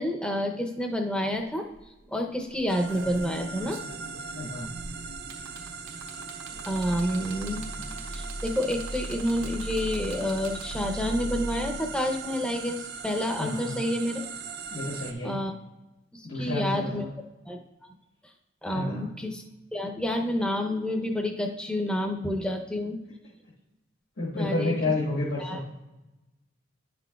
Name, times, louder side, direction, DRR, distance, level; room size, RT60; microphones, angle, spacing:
voice 1, 0.0-1.7 2.1-3.8 6.7-7.6 8.1-14.2 15.2-15.5 16.1-17.1 17.5-17.6 18.6-19.4 19.7-23.0 24.4-24.7 25.4-25.6, equal, 5° left, 2 dB, 0.6 m, -29 dB
sound 1, 1.3-1.4 1.7-2.0 2.5-11.0 12.1-12.2, right 3 dB, 80° right, 1.1 m, -45 dB
sound 2, 2.7-15.1, right 5 dB, 50° right, 0.5 m, -40 dB
voice 2, 4.3-4.7 13.4-13.7 14.7-15.3 16.2-17.1 18.7-19.1 24.2-25.6, left 2 dB, 75° left, -7 dB, 1.6 m, -30 dB
sound 3, 6.5-11.7, right 1 dB, 50° left, 0.7 m, -38 dB
10.5 x 6.1 x 2.3 m, 1.0 s
head